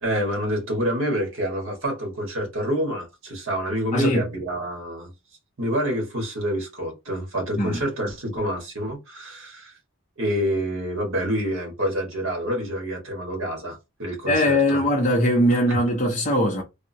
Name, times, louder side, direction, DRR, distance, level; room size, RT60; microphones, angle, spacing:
voice 1, 0.0-5.1 5.6-9.7 10.2-14.8 15.7-15.8, equal, 65° right, 1.5 m, -27 dB
voice 2, 3.9-4.2 7.6-7.8 14.3-16.6, left 1 dB, 35° left, 0.6 m, -20 dB
3.5 x 2.1 x 2.7 m
head